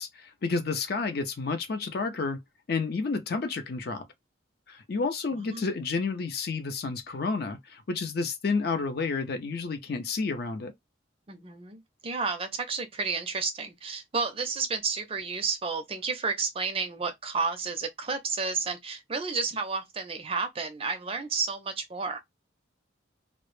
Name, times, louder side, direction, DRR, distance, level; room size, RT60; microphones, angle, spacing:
voice 1, 0.0-2.4 2.7-4.1 4.7-10.7, left 4 dB, 55° left, 0.5 m, -30 dB
voice 2, 5.3-5.7 11.3-22.2, right 4 dB, 30° right, 0.4 m, -31 dB
2.0 x 2.0 x 3.0 m
head